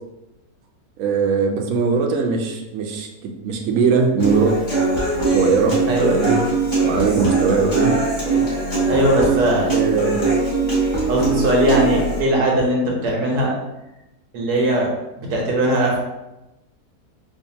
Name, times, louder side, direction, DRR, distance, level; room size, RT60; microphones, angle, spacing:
voice 1, 1.0-4.6 5.3-6.4 6.8-7.9 8.3-8.5 9.7-10.2, right 5 dB, 65° right, 2 dB, 0.9 m, -20 dB
Human voice / Acoustic guitar, 4.2-12.2, right 3 dB, 30° left, 1.3 m, -21 dB
voice 2, 8.9-9.7 11.1-13.5 14.3-14.9 15.2-16.0, right 1 dB, 90° right, -1 dB, 1.4 m, -19 dB
4.8 x 2.5 x 2.7 m, 0.96 s
omnidirectional pair, 1.6 m